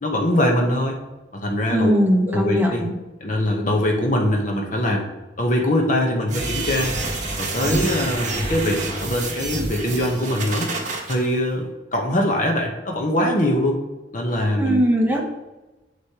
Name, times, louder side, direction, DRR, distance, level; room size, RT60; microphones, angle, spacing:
voice 1, 0.0-1.0 1.3-1.9 2.3-2.8 3.2-5.1 5.4-6.9 7.4-10.7 11.1-13.8 14.1-14.9, left 1 dB, 45° left, 1 dB, 1.2 m, -22 dB
voice 2, 1.7-2.9 14.6-15.2, equal, 10° right, 0 dB, 1.1 m, -20 dB
sound 1, 6.3-11.1, right 2 dB, 45° right, 1.4 m, -27 dB
8.2 x 7.3 x 3.0 m, 1.1 s
head